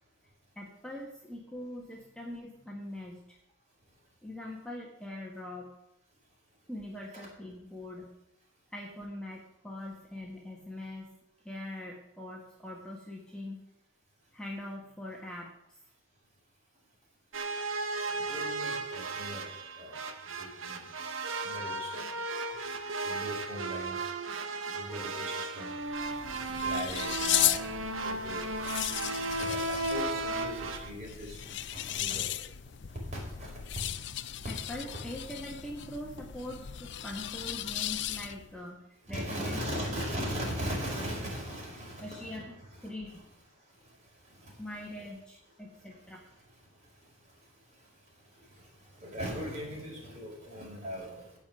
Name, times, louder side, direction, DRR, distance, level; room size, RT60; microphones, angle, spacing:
voice 1, 0.5-3.4 4.2-5.7 6.7-8.2 8.7-11.1 11.4-13.6 14.3-15.8 21.4-21.6 24.6-24.8 34.5-40.3 42.0-42.5 42.8-43.3 44.6-46.2 50.6-50.7, left 1 dB, 5° left, -3 dB, 1.6 m, -42 dB
sound 1, 17.3-30.9, right 2 dB, 85° right, 1.3 m, -35 dB
voice 2, 18.1-19.4 19.7-20.0 20.4-20.8 21.4-22.0 23.0-23.9 24.7-25.7 26.3-27.6 28.0-28.5 29.2-32.2 33.1-33.5 39.1-42.4 44.4-44.5 49.0-51.2, equal, 35° right, -2 dB, 5.5 m, -39 dB
sound 2, 25.8-38.6, left 13 dB, 60° left, 0.5 m, -36 dB
15.5 x 5.2 x 9.0 m, 0.84 s
head